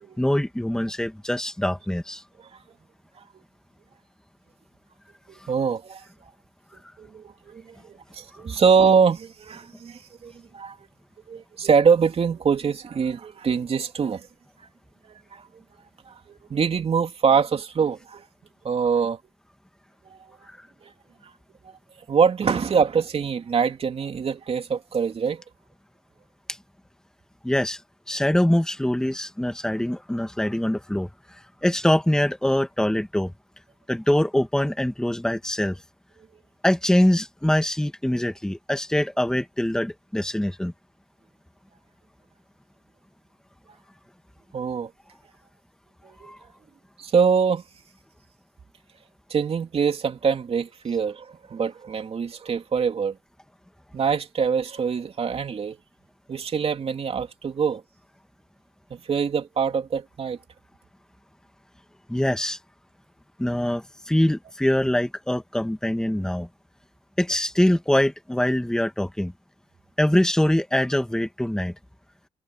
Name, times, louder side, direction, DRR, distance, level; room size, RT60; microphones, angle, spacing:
voice 1, 0.2-2.2 20.5-20.7 26.5-26.6 27.4-27.8 28.1-33.3 33.9-35.8 36.6-40.7 46.2-46.4 62.1-62.6 63.4-66.5 67.2-69.3 70.0-71.7, left 1 dB, 5° left, 2.2 m, -23 dB
voice 2, 5.3-6.0 7.0-10.8 11.3-14.3 15.3-15.5 16.1-18.2 18.6-19.2 20.0-20.2 20.8-20.9 21.6-21.7 22.1-25.4 44.5-44.9 46.0-46.3 47.0-47.6 49.3-53.2 53.9-55.8 56.3-57.8 58.9-60.4, right 6 dB, 50° right, 3.0 m, -24 dB
cardioid pair, 75°, 13 cm